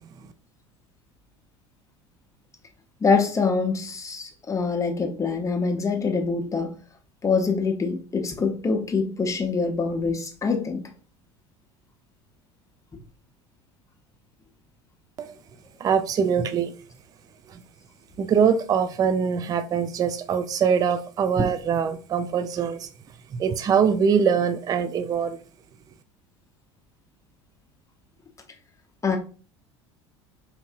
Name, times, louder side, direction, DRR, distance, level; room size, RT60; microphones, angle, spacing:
voice 1, 3.0-6.7 7.2-10.8 29.0-29.2, left 4 dB, 20° left, 0.8 m, -25 dB
voice 2, 15.8-16.7 17.5-17.6 18.2-22.9 23.3-25.4, right 7 dB, 25° right, 0.3 m, -23 dB
4.3 x 2.6 x 2.4 m
figure-of-eight pair, 70°, 15 cm